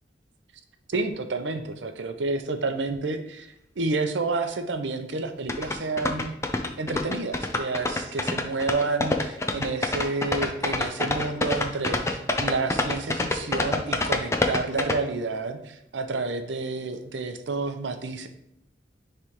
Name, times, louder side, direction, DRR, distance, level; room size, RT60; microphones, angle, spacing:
voice 1, 0.9-3.5 3.8-6.3 6.8-18.3, right 3 dB, 85° right, 7 dB, 0.7 m, -29 dB
sound 1, 5.5-14.9, left 2 dB, 15° left, 0.4 m, -26 dB
9.8 x 3.3 x 3.0 m, 0.76 s
head